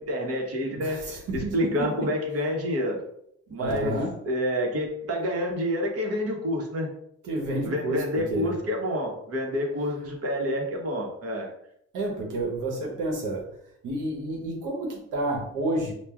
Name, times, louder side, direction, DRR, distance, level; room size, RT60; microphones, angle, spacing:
voice 1, 0.0-3.0 3.5-4.0 4.2-6.9 7.6-11.5, equal, 50° right, 0 dB, 1.1 m, -28 dB
voice 2, 0.6-1.9 3.6-4.1 7.2-8.0 8.3-8.6 11.9-13.4 13.8-15.9, right 1 dB, 85° right, 0 dB, 1.2 m, -30 dB
5.6 x 2.3 x 2.4 m, 0.75 s
cardioid pair, 90°, 30 cm